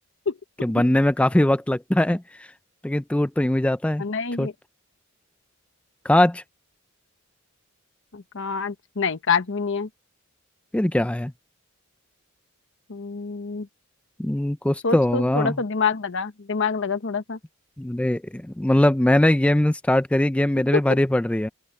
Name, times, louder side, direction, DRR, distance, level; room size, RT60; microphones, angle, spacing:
voice 1, 0.6-2.5 2.8-4.0 4.4-4.5 6.0-6.4 10.7-11.3 14.2-15.6 17.8-21.5, left 1 dB, 5° left, 0.3 m, -21 dB
voice 2, 4.0-4.5 8.1-9.9 12.9-13.7 14.8-17.4 20.7-20.8, left 5 dB, 60° left, 0.9 m, -26 dB
open air
head